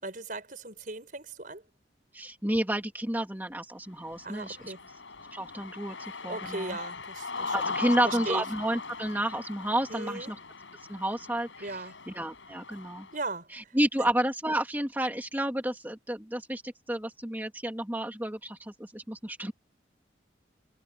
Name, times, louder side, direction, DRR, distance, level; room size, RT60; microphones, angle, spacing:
voice 1, 0.0-1.6 4.2-4.8 6.3-7.8 8.0-8.4 9.9-10.3 11.6-12.0 13.1-13.5 14.0-14.1, right 2 dB, 45° right, 5.5 m, -37 dB
voice 2, 2.1-4.7 5.3-6.8 7.5-10.4 10.9-13.1 13.5-19.5, right 1 dB, 10° right, 2.6 m, -31 dB
Cheering, 4.0-13.2, left 4 dB, 85° left, 6.4 m, -39 dB
head